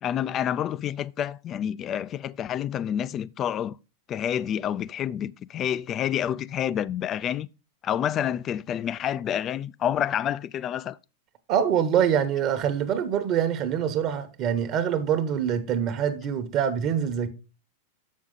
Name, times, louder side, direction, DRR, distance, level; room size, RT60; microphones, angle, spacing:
voice 1, 0.0-3.8 4.1-7.5 7.8-11.0, left 10 dB, 35° left, 0.3 m, -28 dB
voice 2, 11.5-17.3, right 8 dB, 45° right, 1.0 m, -25 dB
7.2 x 6.4 x 3.8 m
hypercardioid pair, 110°, 0 cm